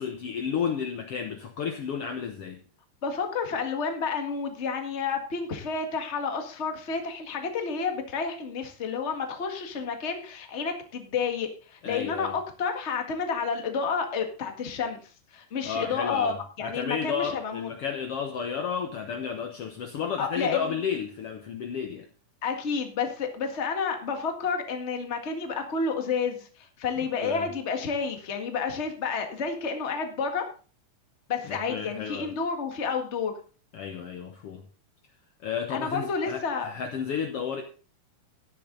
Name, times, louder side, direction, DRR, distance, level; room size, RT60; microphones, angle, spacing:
voice 1, 0.0-2.6 11.8-12.3 15.6-22.0 27.2-27.5 31.5-32.3 33.7-34.6 35.4-37.6, left 7 dB, 85° left, 1.3 m, -32 dB
voice 2, 3.0-15.0 15.3-17.7 20.2-20.7 22.4-26.5 26.8-30.5 31.3-33.3 35.7-36.7, left 5 dB, 35° left, 1.0 m, -30 dB
14.0 x 10.5 x 3.9 m
omnidirectional pair, 4.3 m